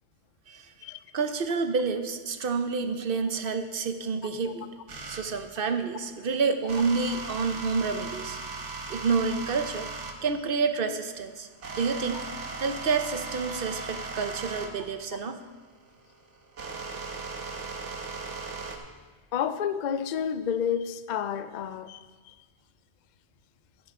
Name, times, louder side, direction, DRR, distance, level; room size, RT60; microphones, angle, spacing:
voice 1, 1.1-4.7 5.1-8.4 8.9-9.9 10.2-12.3 12.6-15.4, right 5 dB, 55° right, 8 dB, 0.8 m, -29 dB
sound 1, 4.9-5.3 6.7-10.2 10.8-18.8, right 4 dB, 85° right, 1.5 m, -38 dB
voice 2, 19.3-22.4, left 8 dB, 55° left, 11 dB, 0.5 m, -30 dB
13.0 x 10.5 x 3.6 m, 1.4 s
omnidirectional pair, 1.2 m